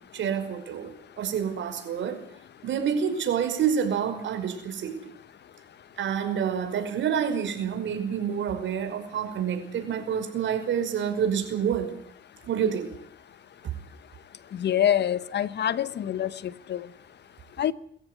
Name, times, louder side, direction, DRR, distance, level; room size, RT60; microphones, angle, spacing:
voice 1, 0.1-2.2 2.6-5.0 6.0-11.9 12.5-12.9, right 8 dB, 70° right, 5.4 m, -28 dB
voice 2, 14.6-16.3 16.7-16.8 17.6-17.7, left 10 dB, 60° left, 1.1 m, -25 dB
23.5 x 14.5 x 9.6 m
cardioid pair, 90°, 20 cm